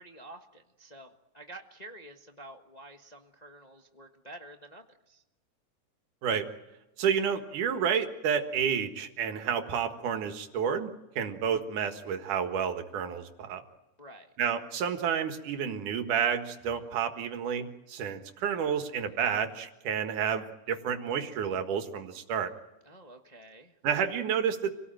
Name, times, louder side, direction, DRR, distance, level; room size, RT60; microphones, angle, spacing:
voice 1, 0.0-5.2 14.0-14.3 22.8-23.8, right 1 dB, 45° left, 3 dB, 0.5 m, -49 dB
voice 2, 7.0-13.6 14.4-22.5 23.8-24.7, right 7 dB, 85° right, 7 dB, 3.1 m, -30 dB
27.5 x 18.5 x 9.0 m, 0.99 s
omnidirectional pair, 3.5 m